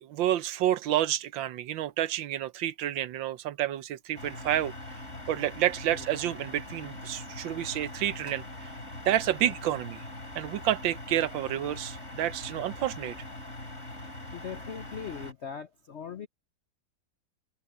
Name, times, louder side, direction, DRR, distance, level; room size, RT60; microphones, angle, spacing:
voice 1, 0.0-5.0 5.3-8.7 9.1-10.0 10.3-13.2, right 12 dB, 75° right, 1.4 m, -29 dB
sound 1, 4.1-15.3, left 1 dB, 35° left, 4.4 m, -42 dB
voice 2, 14.3-16.3, left 7 dB, 65° left, 0.6 m, -41 dB
omnidirectional pair, 2.2 m